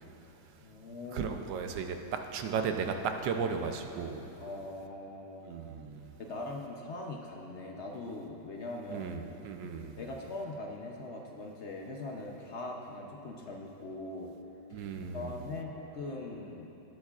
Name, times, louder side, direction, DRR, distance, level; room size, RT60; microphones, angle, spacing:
voice 1, 0.6-1.3 4.4-5.6 6.2-9.1 10.0-14.3 14.7-14.8 15.1-16.7, left 2 dB, 65° left, 0 dB, 0.7 m, -41 dB
voice 2, 1.1-4.2 5.5-6.1 8.9-10.0 14.7-15.3, right 6 dB, 75° right, 5 dB, 1.3 m, -35 dB
19.5 x 8.3 x 2.4 m, 3.0 s
omnidirectional pair, 2.1 m